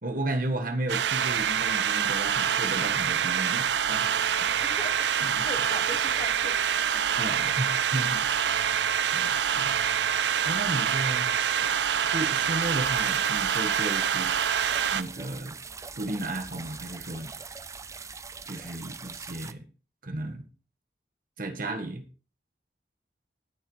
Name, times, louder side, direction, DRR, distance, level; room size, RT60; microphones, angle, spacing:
voice 1, 0.0-4.1 5.2-5.5 7.2-8.3 9.1-9.8 10.4-11.8 12.1-14.3 14.9-15.6 16.0-17.3 18.5-19.6 20.0-20.4 21.4-22.0, right 1 dB, 50° right, 1.4 m, -34 dB
sound 1, 0.9-15.0, right 8 dB, 75° right, 0.5 m, -26 dB
voice 2, 4.6-5.1 5.4-6.6 6.9-7.3, left 2 dB, 35° left, 1.0 m, -40 dB
sound 2, 12.6-19.5, right 5 dB, 15° right, 0.5 m, -42 dB
19.0 x 6.7 x 3.2 m
head